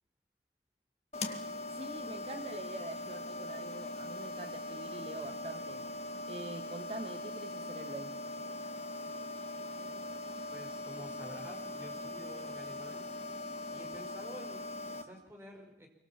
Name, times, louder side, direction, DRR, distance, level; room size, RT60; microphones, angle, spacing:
sound 1, 1.1-15.0, left 2 dB, 40° left, 2.3 m, -41 dB
voice 1, 1.7-5.9 6.3-8.2, right 2 dB, 35° right, 6 dB, 1.5 m, -45 dB
voice 2, 10.5-13.2 13.7-15.9, equal, 15° right, 2 dB, 5.5 m, -50 dB
26.0 x 25.0 x 7.3 m, 0.80 s
head